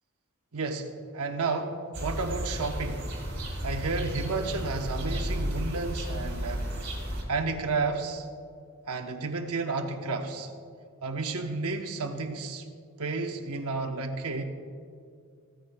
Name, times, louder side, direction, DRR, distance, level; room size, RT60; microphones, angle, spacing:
voice 1, 0.5-3.0 3.4-6.7 7.3-8.3 8.9-10.5 11.0-12.6 13.0-14.4, right 3 dB, 85° right, 5 dB, 0.9 m, -32 dB
sound 1, 1.9-7.2, equal, 50° right, 3.0 m, -33 dB
15.5 x 14.0 x 2.2 m, 2.2 s
head